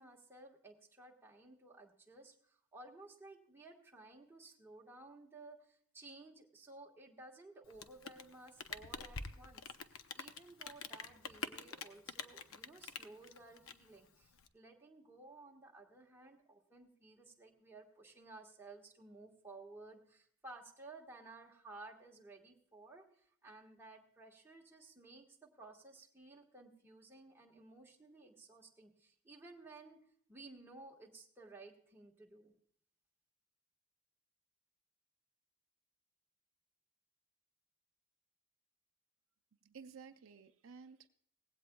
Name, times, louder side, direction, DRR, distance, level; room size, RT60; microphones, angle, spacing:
voice 1, 0.0-9.6 10.1-30.0 30.3-32.5, right 2 dB, 10° right, -2 dB, 1.4 m, -56 dB
Rain, 7.6-14.5, left 5 dB, 70° left, 0.7 m, -47 dB
voice 2, 39.6-41.1, right 5 dB, 65° right, 8 dB, 0.5 m, -54 dB
17.5 x 16.0 x 2.3 m, 0.64 s
head